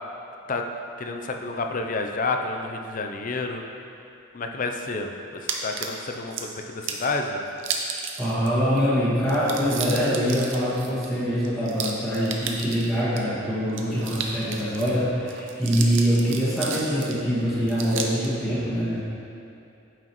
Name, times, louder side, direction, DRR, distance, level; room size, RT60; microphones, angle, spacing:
voice 1, 1.0-3.6 4.3-5.1 5.4-7.4, left 3 dB, 40° left, 4 dB, 0.5 m, -29 dB
sound 1, 5.5-6.4 6.8-7.1 7.6-8.5 8.8-8.9 9.2-13.2 13.7-14.9 15.3-17.2 17.7-18.3, right 6 dB, 65° right, 0.6 m, -33 dB
voice 2, 8.2-19.0, equal, ahead, -13 dB, 1.8 m, -24 dB
9.0 x 6.0 x 3.0 m, 2.7 s
head